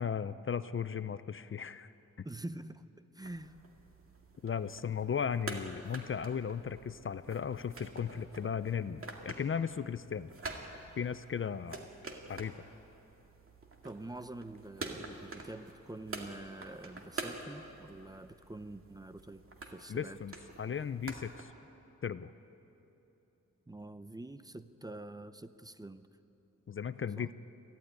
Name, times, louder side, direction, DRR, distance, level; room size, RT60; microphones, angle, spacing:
voice 1, 0.0-1.9 2.2-2.3 4.4-10.3 11.0-11.9 12.3-12.5 19.9-21.5 22.0-22.3 26.7-27.3, left 7 dB, 45° left, 14 dB, 0.5 m, -36 dB
voice 2, 2.2-3.6 13.8-20.2 23.7-26.1 27.2-27.3, right 2 dB, 15° right, 11 dB, 0.6 m, -46 dB
sound 1, 3.2-21.4, right 3 dB, 45° right, 2.2 m, -47 dB
23.5 x 15.0 x 9.5 m, 3.0 s
wide cardioid pair, 120°, 30 cm